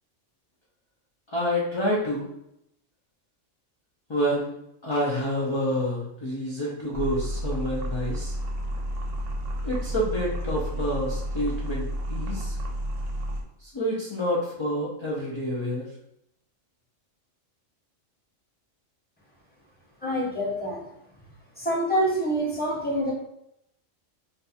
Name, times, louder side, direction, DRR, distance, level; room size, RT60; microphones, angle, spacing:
voice 1, 1.3-2.3 4.1-4.5 4.8-8.3 9.6-12.6 13.6-15.9, equal, 45° left, -6 dB, 0.3 m, -28 dB
sound 1, 6.9-13.4, equal, 75° right, 1.0 m, -31 dB
voice 2, 20.0-20.8 21.6-23.1, right 1 dB, 10° left, -4 dB, 0.8 m, -26 dB
2.5 x 2.3 x 4.0 m, 0.80 s
omnidirectional pair, 1.3 m